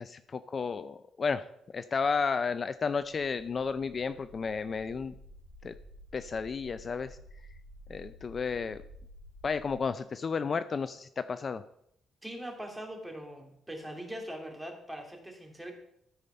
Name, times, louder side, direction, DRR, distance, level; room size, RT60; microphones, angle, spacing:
voice 1, 0.0-1.5 1.7-5.1 5.6-5.7 6.1-7.2 7.9-8.8 9.4-11.6, left 5 dB, 40° left, 12 dB, 0.4 m, -32 dB
sound 1, 3.1-9.8, equal, 90° left, 2.9 m, -52 dB
voice 2, 12.2-15.7, right 1 dB, 10° right, 1 dB, 2.7 m, -41 dB
13.0 x 5.0 x 5.6 m, 0.72 s
cardioid pair, 90°, 0 cm